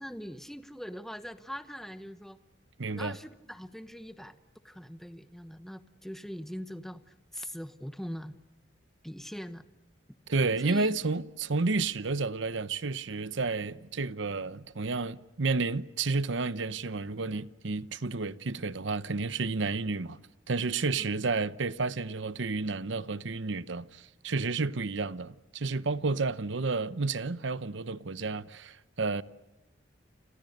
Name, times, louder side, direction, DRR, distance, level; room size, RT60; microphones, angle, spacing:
voice 1, 0.0-2.4 2.9-4.4 4.6-8.4 9.0-9.6 10.6-11.0 20.9-21.1, equal, ahead, 1.0 m, -42 dB
voice 2, 2.8-3.2 10.3-20.2 20.5-29.2, right 3 dB, 70° right, 0.8 m, -31 dB
30.0 x 26.5 x 6.6 m
head